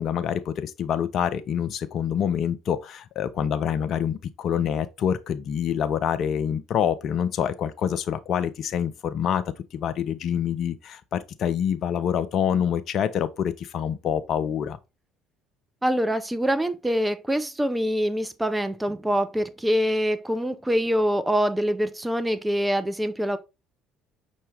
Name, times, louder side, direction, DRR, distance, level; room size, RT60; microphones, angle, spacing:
voice 1, 0.0-9.4 9.7-14.8, left 8 dB, 50° left, 0.5 m, -26 dB
voice 2, 15.8-23.4, equal, 10° right, 0.6 m, -25 dB
5.5 x 2.7 x 3.2 m
figure-of-eight pair, 55°, 0 cm